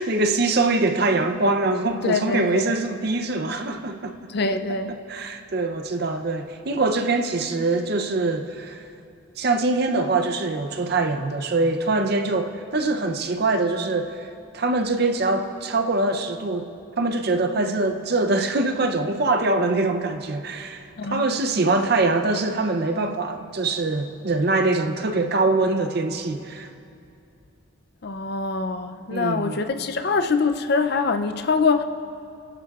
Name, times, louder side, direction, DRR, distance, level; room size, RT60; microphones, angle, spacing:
voice 1, 0.0-4.1 5.1-8.9 9.4-14.3 14.5-26.7 29.1-29.6, right 3 dB, 50° right, 6 dB, 0.6 m, -23 dB
voice 2, 2.0-2.7 4.3-5.0 21.0-21.4 28.0-31.8, left 4 dB, 50° left, 8 dB, 0.5 m, -24 dB
24.0 x 11.5 x 2.4 m, 2.6 s
head